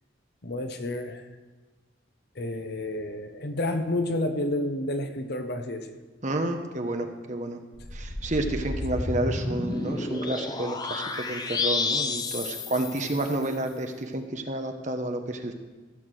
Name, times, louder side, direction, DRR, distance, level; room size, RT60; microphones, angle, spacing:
voice 1, 0.4-1.2 2.3-6.0, left 1 dB, 55° left, 7 dB, 1.0 m, -30 dB
voice 2, 6.2-7.6 7.9-15.5, right 1 dB, 35° right, 5 dB, 1.1 m, -30 dB
sound 1, 7.8-13.6, left 3 dB, 20° left, 0.7 m, -31 dB
15.0 x 7.3 x 6.3 m, 1.3 s
head